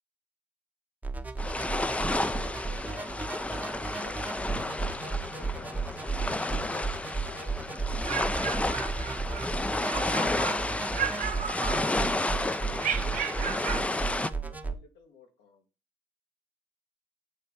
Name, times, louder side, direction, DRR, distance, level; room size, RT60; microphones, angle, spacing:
sound 1, 1.0-14.7, right 4 dB, 10° right, 0.7 m, -35 dB
sound 2, 1.4-14.3, left 2 dB, 10° left, 0.3 m, -31 dB
voice 1, 2.2-3.3 3.7-4.3 4.9-9.2 9.9-15.6, left 4 dB, 90° left, 2 dB, 2.0 m, -53 dB
sound 3, 7.8-9.5 9.8-10.6 10.9-12.2 12.8-13.9, right 9 dB, 50° right, 0.8 m, -34 dB
7.3 x 3.3 x 5.5 m, 0.33 s
cardioid pair, 110°, 17 cm